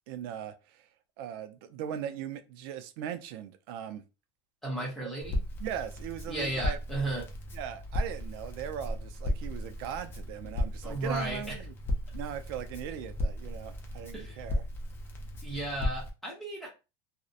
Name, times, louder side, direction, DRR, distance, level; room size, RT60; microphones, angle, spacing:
voice 1, 0.1-0.9 1.2-4.0 4.8-5.1 5.6-6.8 7.5-11.7 12.1-14.6, right 9 dB, 85° right, 0.4 m, -39 dB
voice 2, 4.6-5.4 6.3-7.2 10.8-11.6 14.1-14.4 15.4-16.7, right 1 dB, ahead, 0.8 m, -34 dB
Crackle, 5.2-16.1, left 1 dB, 20° left, 0.4 m, -36 dB
2.4 x 2.0 x 2.5 m
cardioid pair, 170°, 12 cm